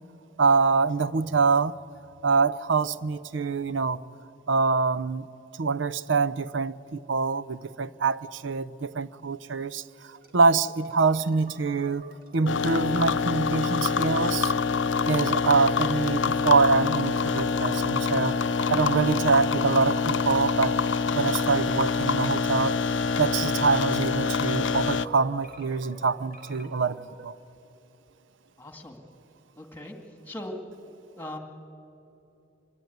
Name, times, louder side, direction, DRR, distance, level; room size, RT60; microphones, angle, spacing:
voice 1, 0.4-1.8 2.2-4.0 4.5-5.3 5.6-12.0 12.3-14.5 15.1-18.4 18.7-20.8 21.2-22.8 23.2-27.0 27.2-27.4, right 4 dB, 70° right, 0.6 m, -25 dB
sound 1, 10.1-13.1 13.6-18.9 19.3-27.3, equal, 50° right, 2.3 m, -50 dB
sound 2, 12.5-25.1, left 5 dB, 70° left, 0.7 m, -26 dB
voice 2, 28.6-29.0 29.6-30.0 30.3-30.6 31.2-31.4, left 1 dB, 10° left, 2.2 m, -39 dB
25.0 x 22.5 x 9.4 m
head